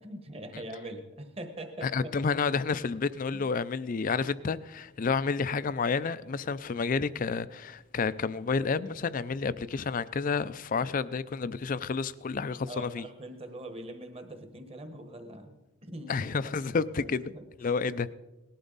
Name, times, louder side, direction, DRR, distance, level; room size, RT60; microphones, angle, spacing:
voice 1, 0.0-2.1 3.3-3.5 12.7-16.5 16.9-17.4, right 1 dB, 30° right, 1.2 m, -43 dB
voice 2, 1.8-13.1 16.1-17.3 17.6-18.1, left 5 dB, 40° left, 0.4 m, -30 dB
18.5 x 11.5 x 4.0 m
head